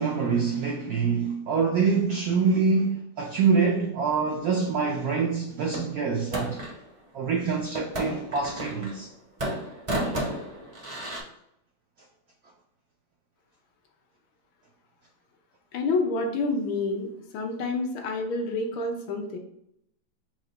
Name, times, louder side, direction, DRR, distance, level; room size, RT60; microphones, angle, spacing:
voice 1, 0.0-6.6 7.1-9.1, right 5 dB, 80° right, 0.8 m, -25 dB
sound 1, 5.7-6.8 7.8-9.1 9.4-11.2, right 1 dB, 45° right, 0.4 m, -32 dB
voice 2, 15.7-17.1 17.3-19.4, left 3 dB, 75° left, 1.5 m, -28 dB
4.7 x 2.1 x 4.0 m
omnidirectional pair, 2.2 m